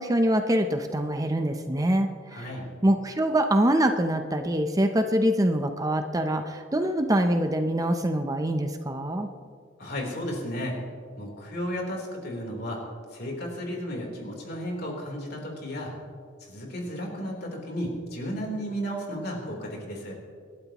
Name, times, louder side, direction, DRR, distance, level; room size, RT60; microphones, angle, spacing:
voice 1, 0.0-2.5 2.8-9.3, right 1 dB, 20° right, 6 dB, 0.6 m, -24 dB
voice 2, 2.3-2.7 9.8-10.8 11.2-12.8 13.1-16.0 16.4-20.1, equal, 55° left, -1 dB, 3.7 m, -33 dB
27.0 x 12.0 x 3.0 m, 2.1 s
head